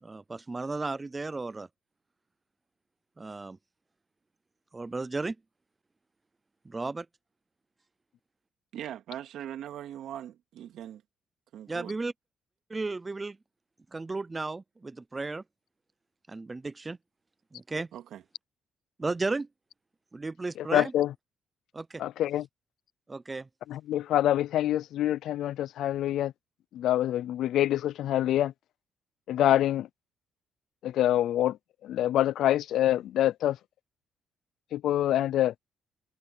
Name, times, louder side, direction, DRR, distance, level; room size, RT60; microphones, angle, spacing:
voice 1, 0.0-1.7 3.2-3.6 4.7-5.4 6.7-7.1 11.7-12.1 12.7-13.4 13.9-15.4 16.3-17.0 17.5-17.9 19.0-19.5 20.1-20.9 21.7-22.0 23.1-23.5, right 3 dB, 20° right, 0.5 m, -34 dB
voice 2, 8.7-11.0 11.5-12.0 17.9-18.2, right 11 dB, 75° right, 2.6 m, -40 dB
voice 3, 20.6-21.1 22.0-22.5 23.7-26.3 26.7-28.5 29.3-29.9 30.8-31.6 31.8-33.6 34.7-35.5, left 12 dB, 75° left, 0.5 m, -26 dB
cardioid pair, 95°, 0 cm